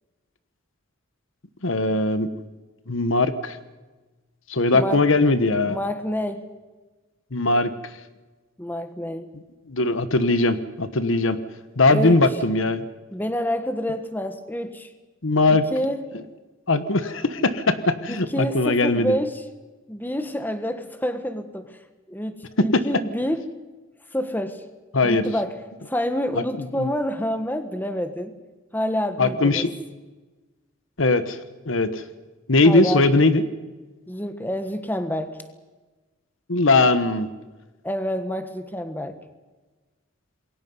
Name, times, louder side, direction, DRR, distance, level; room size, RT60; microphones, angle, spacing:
voice 1, 1.6-2.3 2.9-3.6 4.5-5.8 7.3-7.7 9.7-11.4 11.8-12.8 15.2-15.6 16.7-19.1 22.7-22.8 24.9-25.3 26.3-26.9 29.2-29.7 31.0-31.4 31.7-32.0 32.5-33.4 36.5-37.3, left 2 dB, 65° left, 12 dB, 1.2 m, -20 dB
voice 2, 4.7-5.1 5.7-6.5 8.6-9.3 11.9-12.2 13.1-14.9 15.7-16.0 18.1-19.4 19.9-21.8 22.1-23.4 24.1-24.6 25.0-25.6 25.9-28.4 28.7-29.7 32.6-33.2 34.1-35.4 37.8-39.2, equal, 10° left, 9 dB, 1.4 m, -28 dB
27.5 x 22.0 x 5.5 m, 1.2 s
head